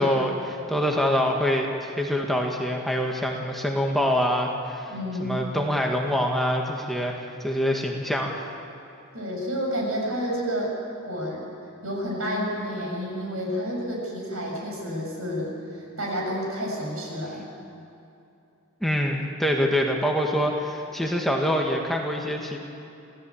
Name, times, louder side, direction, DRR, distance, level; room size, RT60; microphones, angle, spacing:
voice 1, 0.0-4.9 5.2-8.3 18.8-22.6, equal, ahead, 0 dB, 1.8 m, -25 dB
voice 2, 4.9-5.4 9.1-10.7 11.1-11.5 11.8-15.5 16.0-17.5, equal, 80° right, -1 dB, 7.2 m, -30 dB
27.5 x 17.0 x 8.6 m, 2.7 s
head